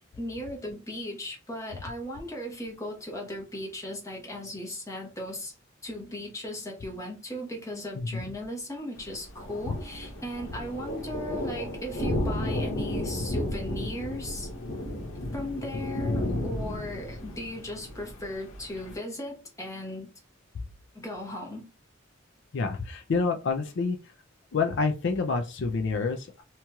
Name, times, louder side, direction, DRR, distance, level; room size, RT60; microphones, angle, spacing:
voice 1, 0.1-5.5 5.8-14.5 15.3-20.1 20.9-21.7, left 1 dB, 15° left, 1.0 m, -37 dB
voice 2, 8.0-8.3 9.7-9.8 22.5-24.0 24.5-26.4, left 4 dB, 65° left, 0.4 m, -28 dB
Thunder, 9.0-18.9, left 1 dB, 85° left, 0.8 m, -33 dB
2.9 x 2.8 x 2.3 m
head